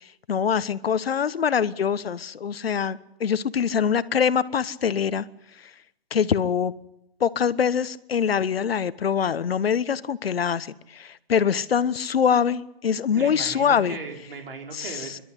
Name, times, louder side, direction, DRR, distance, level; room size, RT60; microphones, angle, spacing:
voice 1, 0.3-5.3 6.1-6.7 7.2-14.0 14.7-15.1, left 7 dB, 75° left, 16 dB, 1.2 m, -24 dB
voice 2, 13.1-15.2, right 4 dB, 65° right, 3 dB, 4.5 m, -37 dB
28.5 x 12.5 x 9.9 m, 0.86 s
hypercardioid pair, 145°, 30 cm